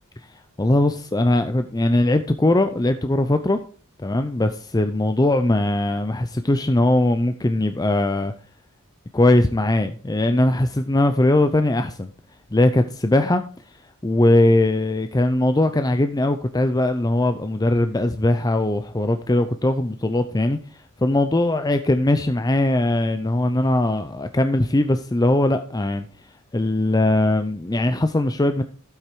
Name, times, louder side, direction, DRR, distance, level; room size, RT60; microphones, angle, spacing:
voice 1, 0.6-3.6 4.0-8.3 9.1-12.1 12.5-13.4 14.0-26.0 26.5-28.6, left 1 dB, 15° left, 8 dB, 0.6 m, -20 dB
12.0 x 8.3 x 4.6 m, 0.39 s
head